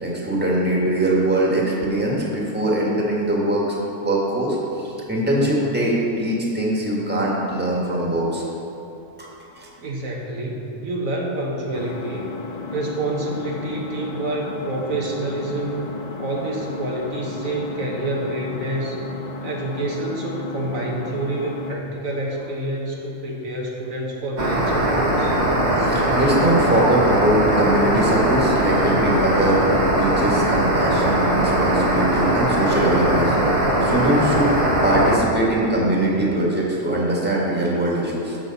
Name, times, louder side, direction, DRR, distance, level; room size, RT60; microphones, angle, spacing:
voice 1, 0.0-8.4 9.2-9.3 9.6-9.7 25.7-34.5 34.8-38.4, right 1 dB, 5° right, -4 dB, 1.7 m, -22 dB
voice 2, 9.8-12.3 12.7-15.9 16.2-19.0 19.4-25.4, right 2 dB, 75° right, -2 dB, 1.7 m, -28 dB
Engine, 11.7-21.7, left 4 dB, 45° left, 0.5 m, -34 dB
sound 1, 24.4-35.2, right 1 dB, 50° right, 1.7 m, -20 dB
12.5 x 7.8 x 4.1 m, 2.8 s
omnidirectional pair, 1.4 m